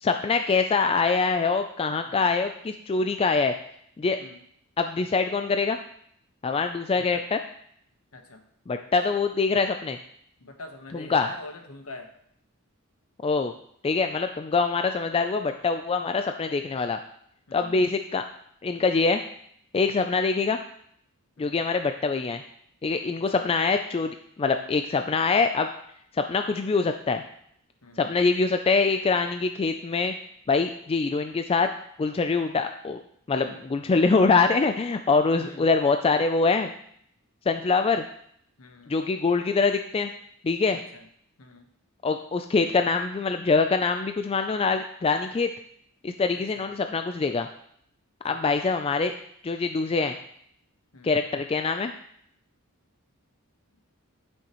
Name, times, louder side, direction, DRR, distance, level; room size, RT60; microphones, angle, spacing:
voice 1, 0.0-3.5 4.0-4.2 4.8-5.8 6.4-7.4 8.7-10.0 10.9-11.3 13.2-13.5 13.8-17.0 17.5-18.2 18.6-19.2 19.7-20.6 21.4-22.4 22.8-25.7 26.2-27.2 28.0-30.1 30.5-31.7 32.0-33.0 33.3-36.7 37.5-38.0 38.9-40.1 40.4-40.8 42.0-45.5 46.0-47.5 48.2-49.1 49.4-50.2 51.0-51.9, left 4 dB, 25° left, 7 dB, 0.3 m, -24 dB
voice 2, 6.9-7.3 8.1-8.5 10.4-12.1 17.5-17.9 21.4-21.6 23.1-23.5 27.8-28.2 35.3-35.7 38.6-39.0 40.7-41.1 41.4-41.7 46.3-46.7 48.3-48.6 50.9-51.2, left 2 dB, 70° left, 5 dB, 1.1 m, -45 dB
11.5 x 6.3 x 3.0 m, 0.68 s
head